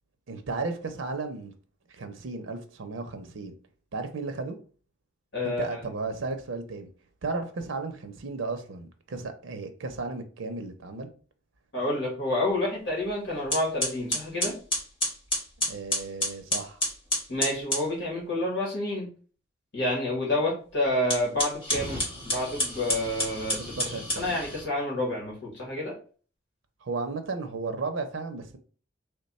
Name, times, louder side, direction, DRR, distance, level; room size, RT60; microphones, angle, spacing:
voice 1, 0.3-1.5 1.9-3.5 3.9-4.6 5.4-6.9 7.2-11.1 15.7-16.8 23.6-24.3 26.8-28.6, right 3 dB, 90° right, 0.6 m, -34 dB
voice 2, 5.3-5.6 11.7-14.5 17.3-19.1 19.7-22.0 22.2-25.9, left 1 dB, 65° left, 1.3 m, -29 dB
sound 1, 13.0-13.1 13.5-17.9 21.0-24.7, left 1 dB, 30° left, 1.5 m, -30 dB
3.2 x 2.2 x 4.1 m
head